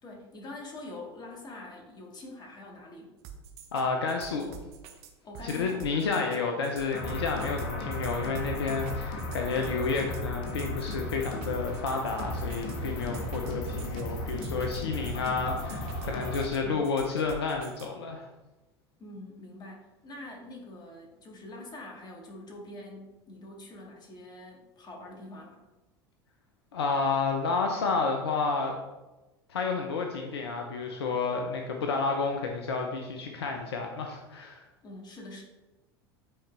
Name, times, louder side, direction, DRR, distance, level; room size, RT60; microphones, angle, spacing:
voice 1, 0.0-3.1 5.2-5.9 16.4-16.8 19.0-25.6 34.8-35.4, left 2 dB, 30° left, 0 dB, 2.1 m, -45 dB
sound 1, 3.2-17.9, right 8 dB, 50° right, 0.9 m, -47 dB
voice 2, 3.7-4.6 5.4-18.3 26.7-28.7 29.5-34.6, left 4 dB, 75° left, 2 dB, 0.7 m, -30 dB
sound 2, 6.9-16.4, left 1 dB, 55° left, 1.4 m, -35 dB
8.8 x 4.2 x 3.4 m, 1.1 s
figure-of-eight pair, 75°, 14 cm